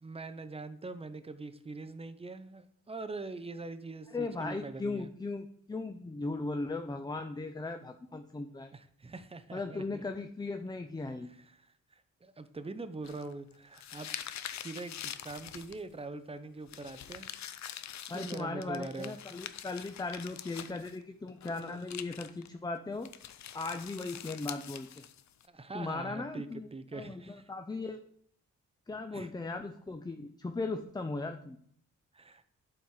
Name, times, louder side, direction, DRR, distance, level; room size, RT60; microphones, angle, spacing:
voice 1, 0.0-5.1 8.7-10.0 11.3-14.1 14.5-17.3 17.7-19.4 25.5-27.4 29.1-29.3 32.1-32.4, right 3 dB, 20° right, 11 dB, 0.7 m, -43 dB
voice 2, 4.1-8.7 9.5-11.3 18.1-23.1 23.5-25.1 25.7-28.0 28.9-31.6, left 3 dB, 15° left, 7 dB, 0.5 m, -38 dB
sound 1, 13.0-16.0 16.7-21.0 21.3-22.5 23.0-25.5, left 10 dB, 70° left, 0.6 m, -44 dB
11.5 x 4.4 x 4.8 m, 0.64 s
cardioid pair, 95°, 29 cm